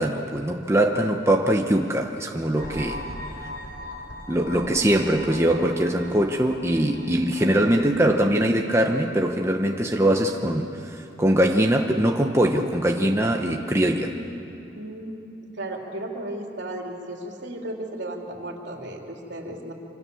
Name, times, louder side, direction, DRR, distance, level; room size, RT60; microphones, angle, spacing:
voice 1, 0.0-3.0 4.3-14.2, right 1 dB, 15° right, 2 dB, 0.9 m, -22 dB
sound 1, 2.6-9.3, left 1 dB, 70° left, 3.5 m, -40 dB
voice 2, 4.4-5.0 13.9-14.3 14.7-15.2 15.6-19.7, right 1 dB, 65° right, 1 dB, 3.4 m, -35 dB
26.5 x 26.5 x 7.1 m, 2.8 s
head